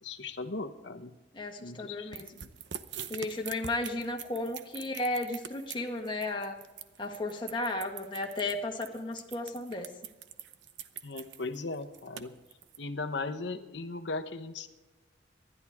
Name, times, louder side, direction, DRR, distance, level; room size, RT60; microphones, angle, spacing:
voice 1, 0.0-1.1 1.6-2.5 11.0-12.3 12.8-14.7, left 3 dB, 75° left, 7 dB, 1.1 m, -38 dB
voice 2, 1.3-2.3 3.1-6.6 7.0-9.9, left 2 dB, 25° left, 2 dB, 1.7 m, -34 dB
sound 1, 2.1-12.8, right 9 dB, 80° right, 0.8 m, -44 dB
26.0 x 11.5 x 3.6 m, 1.1 s
head